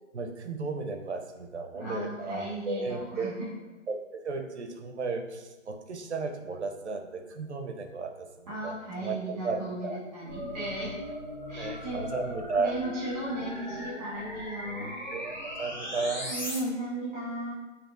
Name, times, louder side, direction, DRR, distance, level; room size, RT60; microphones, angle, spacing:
voice 1, 0.1-3.4 3.9-9.2 9.4-10.0 11.5-12.7 15.1-16.3, right 4 dB, 60° right, 5 dB, 0.6 m, -34 dB
voice 2, 1.7-3.3 8.5-10.9 11.5-12.1 12.6-14.9 16.2-17.5, right 1 dB, 10° right, -8 dB, 1.3 m, -36 dB
sound 1, 10.3-16.6, left 1 dB, 35° left, 0.6 m, -38 dB
6.8 x 2.9 x 2.5 m, 1.1 s
hypercardioid pair, 175°, 39 cm